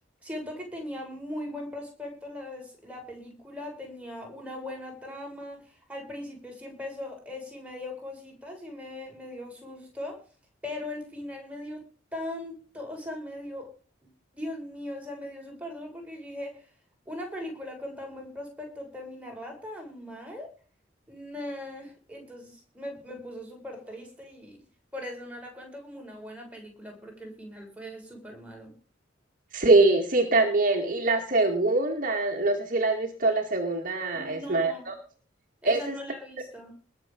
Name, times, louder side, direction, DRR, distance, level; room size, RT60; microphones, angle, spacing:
voice 1, 0.2-10.2 10.6-11.8 12.1-13.7 14.3-16.7 17.1-20.5 21.1-24.6 24.9-28.7 34.1-34.9 35.6-36.7, left 1 dB, 5° right, 1 dB, 7.5 m, -39 dB
voice 2, 29.5-34.9 35.6-36.0, right 2 dB, 45° right, 4 dB, 2.2 m, -23 dB
21.0 x 7.6 x 5.3 m, 0.38 s
head